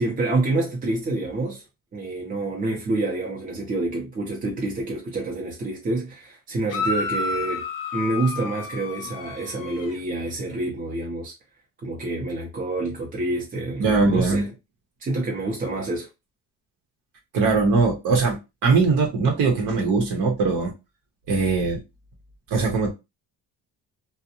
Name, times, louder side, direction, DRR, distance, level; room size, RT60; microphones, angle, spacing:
voice 1, 0.0-1.6 1.9-7.6 7.9-11.3 11.8-14.5 15.0-16.1, right 2 dB, 25° right, 0.6 m, -27 dB
sound 1, 6.7-10.0, left 4 dB, 70° left, 0.8 m, -30 dB
voice 2, 13.8-14.4 17.3-20.7 21.3-21.8 22.5-22.9, right 4 dB, 65° right, 0.8 m, -21 dB
2.6 x 2.1 x 2.7 m
cardioid pair, 140°, 35 cm